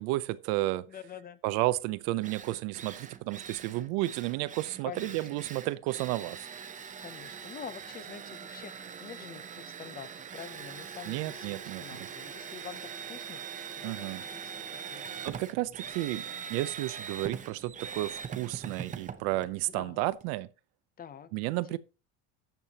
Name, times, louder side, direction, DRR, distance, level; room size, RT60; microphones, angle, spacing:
voice 1, 0.0-0.9 1.4-6.5 11.1-12.0 13.8-14.2 15.2-20.5 21.3-21.8, right 18 dB, 85° right, 0.7 m, -32 dB
voice 2, 0.9-1.4 4.8-5.4 7.0-11.5 11.8-15.0 19.7-20.1 21.0-21.3 21.7-21.8, left 8 dB, 25° left, 0.5 m, -46 dB
Drill, 1.8-1.9 2.2-20.3, right 7 dB, 20° right, 0.6 m, -42 dB
12.5 x 7.4 x 2.9 m
cardioid pair, 145°, 36 cm